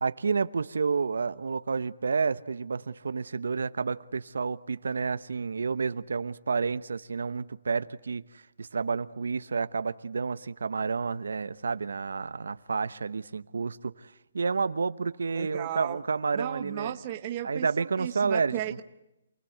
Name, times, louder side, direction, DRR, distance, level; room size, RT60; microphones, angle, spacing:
voice 1, 0.0-17.0 17.4-18.6, right 5 dB, 85° right, 1.0 m, -30 dB
voice 2, 15.3-16.0 16.3-18.8, right 12 dB, 20° right, 1.0 m, -35 dB
28.5 x 20.5 x 7.9 m
hypercardioid pair, 180°, 0 cm